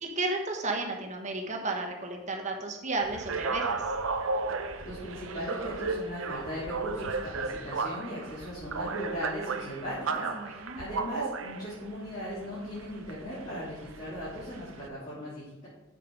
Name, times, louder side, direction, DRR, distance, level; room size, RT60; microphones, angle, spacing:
voice 1, 0.0-3.8 10.2-10.8, right 2 dB, 35° right, 2 dB, 1.2 m, -33 dB
sound 1, 3.0-14.9, right 4 dB, 70° right, 0.7 m, -35 dB
voice 2, 4.8-15.7, equal, 35° left, -11 dB, 3.2 m, -38 dB
7.2 x 6.6 x 4.9 m, 0.97 s
head